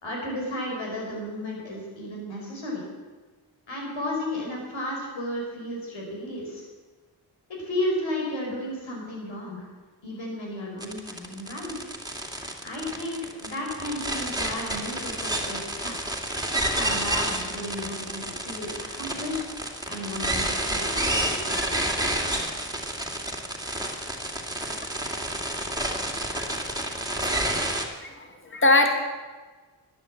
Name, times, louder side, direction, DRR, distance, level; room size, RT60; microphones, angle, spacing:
voice 1, 0.0-2.8 3.7-6.7 7.6-9.6 10.0-11.7 12.6-16.0 16.7-19.4 19.8-21.6, left 1 dB, 85° left, -1 dB, 5.0 m, -33 dB
sound 1, 10.8-27.8, right 1 dB, 10° right, 2.5 m, -29 dB
voice 2, 26.3-26.8 27.2-27.5 28.0-28.9, left 2 dB, 25° left, 4 dB, 1.9 m, -24 dB
11.5 x 10.5 x 7.8 m, 1.4 s
cardioid pair, 45°, 45 cm